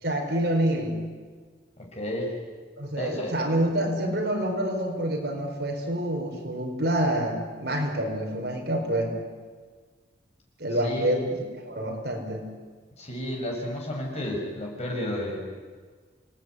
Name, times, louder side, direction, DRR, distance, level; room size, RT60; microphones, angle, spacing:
voice 1, 0.0-1.0 2.8-9.1 10.6-12.4, right 1 dB, 60° right, 2 dB, 5.1 m, -27 dB
voice 2, 1.8-2.3 3.0-3.3 10.8-11.2 13.0-15.4, left 1 dB, 35° left, -1 dB, 7.1 m, -32 dB
28.5 x 19.0 x 9.8 m, 1.5 s
head